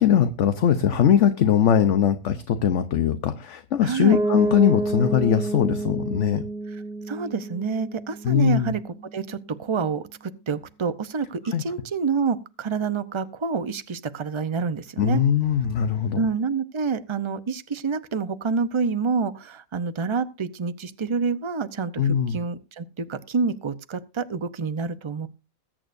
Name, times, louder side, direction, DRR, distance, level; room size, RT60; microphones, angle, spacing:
voice 1, 0.0-6.4 8.2-8.7 11.5-11.6 15.0-16.2 22.0-22.4, left 9 dB, 60° left, 10 dB, 1.1 m, -21 dB
voice 2, 3.8-4.2 7.1-8.8 9.1-15.2 16.1-25.3, right 5 dB, 30° right, 11 dB, 0.6 m, -27 dB
Piano, 4.1-9.8, right 2 dB, 5° right, 1.1 m, -30 dB
20.5 x 8.9 x 2.6 m, 0.29 s
omnidirectional pair, 1.5 m